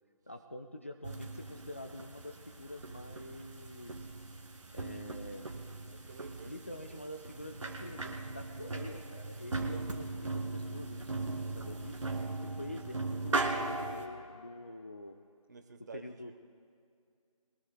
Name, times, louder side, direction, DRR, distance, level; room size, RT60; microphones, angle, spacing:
voice 1, 0.3-4.1 4.7-5.5 6.4-15.2 15.8-16.4, left 1 dB, 20° left, 5 dB, 0.4 m, -46 dB
sound 1, 1.0-14.1, right 3 dB, 60° right, 2.1 m, -39 dB
voice 2, 5.8-7.1 15.5-16.4, right 5 dB, 30° right, 7 dB, 1.0 m, -51 dB
23.0 x 21.0 x 2.3 m, 2.3 s
figure-of-eight pair, 160°, 18 cm